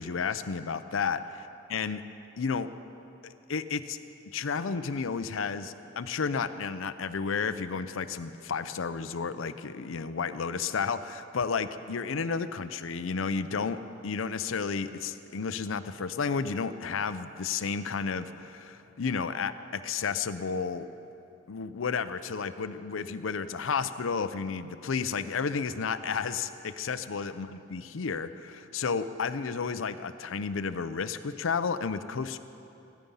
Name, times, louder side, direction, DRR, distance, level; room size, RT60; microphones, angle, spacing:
voice 1, 0.0-1.2 1.7-2.1 2.4-2.7 3.2-4.0 4.3-20.9 21.5-32.4, left 5 dB, 85° left, 12 dB, 0.6 m, -32 dB
15.5 x 12.5 x 5.5 m, 2.8 s
head